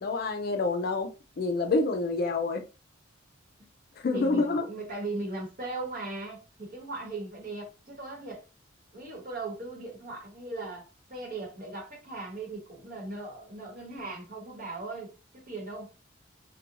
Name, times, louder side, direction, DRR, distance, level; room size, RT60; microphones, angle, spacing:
voice 1, 0.0-1.1 1.4-2.6 4.0-4.7, left 3 dB, 50° left, 0.4 m, -27 dB
voice 2, 4.1-8.4 8.9-15.8, right 2 dB, 45° right, 1.1 m, -38 dB
2.5 x 2.2 x 2.8 m
head